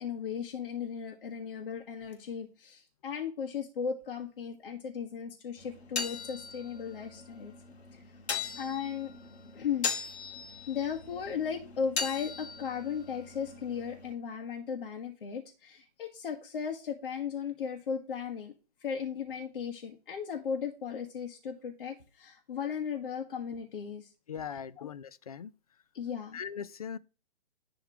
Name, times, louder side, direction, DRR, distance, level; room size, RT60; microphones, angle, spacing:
voice 1, 0.0-7.5 7.9-8.0 8.5-9.1 9.5-9.9 10.7-18.5 18.8-24.1 24.8-24.9 25.9-26.4, left 7 dB, 55° left, 1.6 m, -36 dB
sound 1, 5.6-14.1, left 5 dB, 80° left, 1.7 m, -39 dB
voice 2, 24.3-25.5 26.3-27.0, left 7 dB, 35° left, 0.4 m, -40 dB
10.5 x 3.6 x 4.6 m
hypercardioid pair, 165°, 32 cm